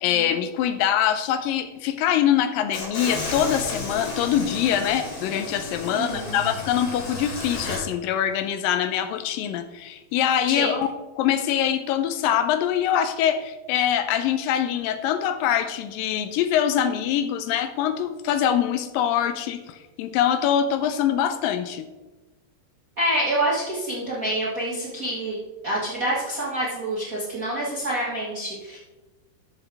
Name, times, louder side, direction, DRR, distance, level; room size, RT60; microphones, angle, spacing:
voice 1, 0.0-10.9 11.2-21.9, left 10 dB, 80° left, 10 dB, 2.1 m, -24 dB
sound 1, 2.7-7.8, left 2 dB, 55° left, 4.1 m, -33 dB
voice 2, 5.8-6.4 10.5-10.7 23.0-25.4 25.6-28.8, right 1 dB, 90° right, -6 dB, 0.7 m, -27 dB
12.5 x 7.1 x 3.4 m, 1.1 s
omnidirectional pair, 4.4 m